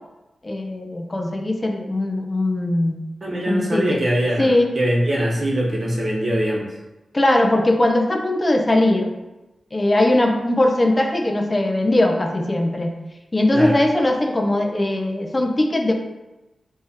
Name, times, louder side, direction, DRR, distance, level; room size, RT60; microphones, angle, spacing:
voice 1, 0.4-3.0 3.5-4.0 4.4-4.7 7.1-9.1 9.7-12.9 13.3-15.9, left 1 dB, 35° left, 3 dB, 0.5 m, -20 dB
voice 2, 3.2-6.7 13.5-13.8, right 1 dB, 55° right, -4 dB, 1.0 m, -22 dB
3.0 x 2.3 x 4.2 m, 1.0 s
cardioid pair, 45°, 0 cm